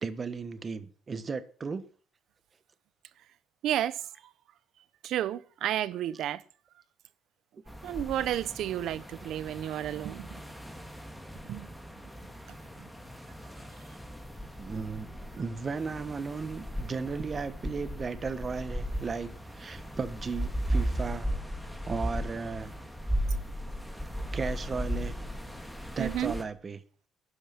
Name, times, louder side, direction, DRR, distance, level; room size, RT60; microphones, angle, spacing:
voice 1, 0.0-1.9 14.5-21.3 21.9-22.7 24.3-25.2 25.9-26.8, right 5 dB, 25° right, 1.3 m, -35 dB
voice 2, 3.6-4.0 5.0-6.4 7.8-10.4 11.5-11.7 12.8-12.9 26.0-26.3, right 12 dB, 65° right, 0.9 m, -31 dB
sound 1, 7.7-26.4, equal, ahead, 2.1 m, -36 dB
12.5 x 10.0 x 7.6 m
cardioid pair, 155°, 0 cm